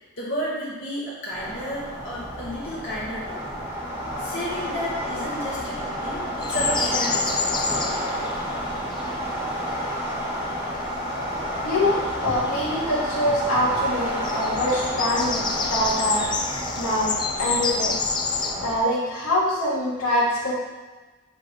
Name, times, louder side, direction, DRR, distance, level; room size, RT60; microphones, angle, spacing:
voice 1, 0.2-3.6 4.2-8.3, equal, 55° left, -7 dB, 2.1 m, -32 dB
sound 1, 1.3-18.8, equal, 10° right, 1.4 m, -30 dB
sound 2, 6.4-9.2 12.0-12.7 14.1-18.5, left 4 dB, 20° left, 0.4 m, -28 dB
voice 2, 11.6-18.1 18.6-20.5, left 1 dB, 80° left, -6 dB, 2.3 m, -24 dB
8.6 x 4.6 x 3.5 m, 1.2 s
head